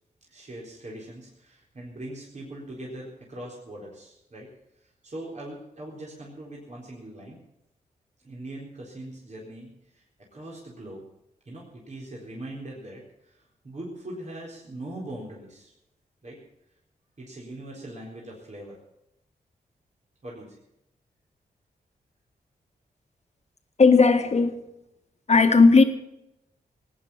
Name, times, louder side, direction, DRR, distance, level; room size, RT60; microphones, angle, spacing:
voice 1, 0.2-4.5 5.0-7.4 8.2-10.0 10.3-11.0 11.5-15.7 16.2-16.4 17.2-18.8 20.2-20.6, right 1 dB, 45° right, 4.1 m, -41 dB
voice 2, 23.8-24.6 25.3-25.8, left 4 dB, 45° left, 1.6 m, -16 dB
18.5 x 9.4 x 7.2 m
cardioid pair, 60°, 16 cm